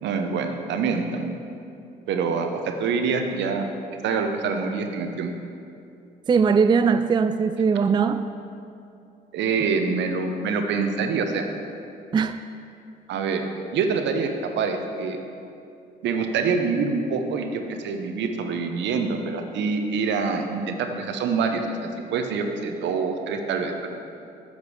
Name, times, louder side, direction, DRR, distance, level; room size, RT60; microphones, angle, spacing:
voice 1, 0.0-1.3 2.1-3.7 4.0-5.3 9.3-11.5 13.1-13.4 13.7-15.2 16.0-21.8 22.1-23.9, right 5 dB, 70° right, 5 dB, 0.9 m, -25 dB
voice 2, 6.3-8.2 12.1-12.4, right 5 dB, 25° right, 10 dB, 0.3 m, -20 dB
8.2 x 5.2 x 6.5 m, 2.6 s
hypercardioid pair, 55°, 19 cm